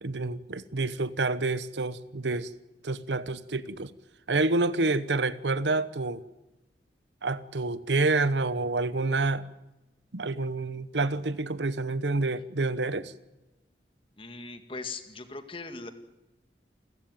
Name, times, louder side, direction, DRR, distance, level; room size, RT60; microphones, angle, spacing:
voice 1, 0.0-2.5 2.8-3.9 4.3-6.2 7.2-9.5 10.1-13.1, right 3 dB, 90° right, 1.0 m, -28 dB
voice 2, 14.2-15.9, left 3 dB, 30° left, 2.0 m, -39 dB
29.0 x 14.5 x 9.2 m
head